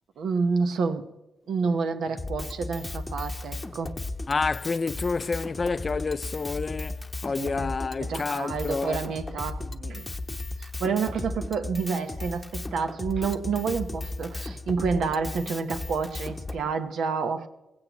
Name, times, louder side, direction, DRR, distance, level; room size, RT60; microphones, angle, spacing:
voice 1, 0.2-1.1 1.5-3.9 7.3-7.7 8.0-10.1 10.6-17.5, right 5 dB, 85° right, 1.1 m, -29 dB
Drum kit, 2.2-16.6, left 2 dB, 10° left, 0.9 m, -36 dB
voice 2, 4.3-9.0, left 4 dB, 30° left, 0.4 m, -29 dB
19.0 x 16.5 x 3.1 m
wide cardioid pair, 160°, 0 cm